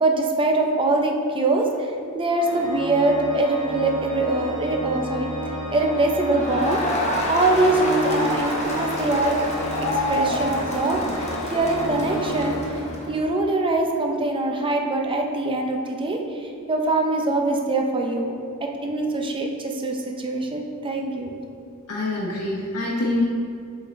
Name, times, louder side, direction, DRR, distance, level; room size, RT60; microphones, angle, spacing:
voice 1, 0.0-1.9 2.1-5.3 5.7-9.4 10.1-12.8 13.1-18.3 18.6-21.3, right 2 dB, 25° right, 2 dB, 0.6 m, -23 dB
Organ, 2.4-13.2, equal, 65° left, 1.2 m, -32 dB
Crowd, 6.2-13.2, left 1 dB, 30° left, 0.9 m, -28 dB
voice 2, 21.9-23.2, left 2 dB, 85° left, -4 dB, 1.0 m, -25 dB
7.2 x 3.9 x 4.1 m, 2.4 s
head